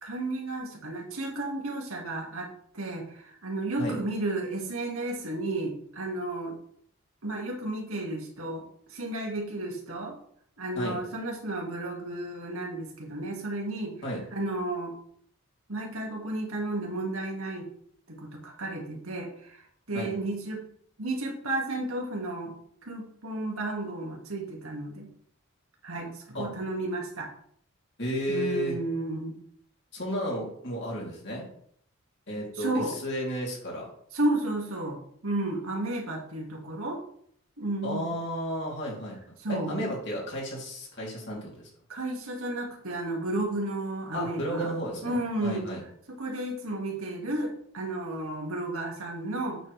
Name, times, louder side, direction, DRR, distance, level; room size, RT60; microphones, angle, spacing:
voice 1, 0.0-6.6 7.2-8.6 8.9-10.2 10.6-13.9 14.3-14.9 15.7-17.7 18.1-19.6 19.9-20.6 21.0-22.6 22.8-25.1 25.8-27.3 28.3-29.4 32.5-32.9 34.1-37.0 37.6-38.1 39.4-39.8 41.9-44.7 45.0-45.7 46.1-49.6, right 2 dB, 80° right, 0 dB, 2.3 m, -32 dB
voice 2, 28.0-28.8 29.9-31.5 32.3-33.9 37.8-39.2 39.5-41.5 44.1-45.8, equal, 55° left, -3 dB, 3.4 m, -33 dB
8.7 x 7.6 x 3.4 m, 0.64 s
head